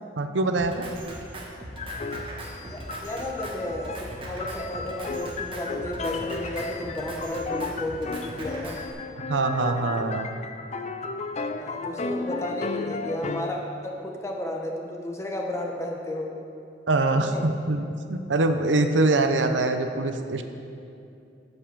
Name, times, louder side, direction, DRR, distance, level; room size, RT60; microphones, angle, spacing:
voice 1, 0.2-0.9 9.3-10.3 16.9-20.4, right 2 dB, 80° right, 7 dB, 0.8 m, -24 dB
Drum kit, 0.6-8.9, right 1 dB, 30° right, 1.5 m, -39 dB
sound 1, 1.8-13.6, left 3 dB, 40° left, 0.5 m, -34 dB
voice 2, 2.6-8.7 11.5-16.3 17.1-17.5, left 1 dB, 15° left, 0 dB, 1.3 m, -33 dB
13.0 x 5.4 x 6.8 m, 2.6 s
head